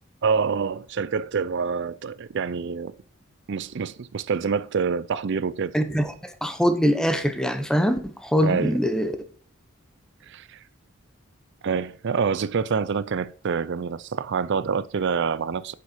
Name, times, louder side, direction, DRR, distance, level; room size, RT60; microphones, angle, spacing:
voice 1, 0.2-2.9 3.5-5.7 8.4-8.7 10.3-10.6 11.6-15.7, right 5 dB, 60° right, 0.5 m, -26 dB
voice 2, 5.7-9.2, equal, 5° left, 1.1 m, -23 dB
9.5 x 6.9 x 4.5 m
head